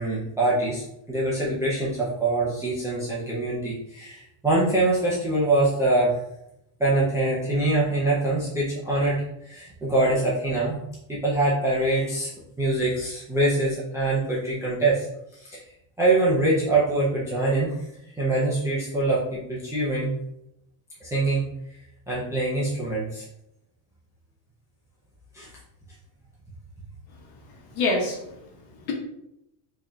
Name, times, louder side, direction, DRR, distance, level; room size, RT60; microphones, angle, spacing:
voice 1, 0.0-6.2 6.8-10.8 11.1-12.3 12.6-15.1 15.3-15.6 16.0-17.7 18.2-20.1 21.0-21.5 22.1-23.2 25.3-25.5, right 2 dB, 5° right, -8 dB, 0.4 m, -24 dB
voice 2, 27.4-28.9, left 2 dB, 50° left, 0 dB, 1.1 m, -28 dB
4.9 x 2.7 x 2.3 m, 0.83 s
cardioid pair, 145°, 49 cm